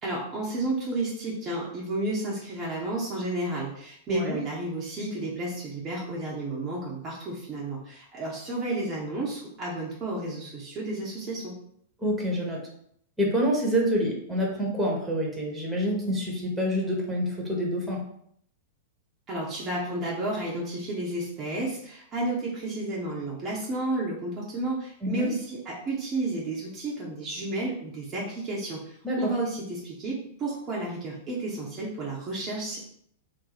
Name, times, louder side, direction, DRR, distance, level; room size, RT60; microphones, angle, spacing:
voice 1, 0.0-11.5 19.3-32.8, right 2 dB, 30° right, -4 dB, 0.8 m, -32 dB
voice 2, 12.0-12.6 13.2-18.0 25.0-25.3 29.0-29.3, equal, 5° right, -2 dB, 1.1 m, -27 dB
2.7 x 2.2 x 4.0 m, 0.67 s
figure-of-eight pair, 100°, 0 cm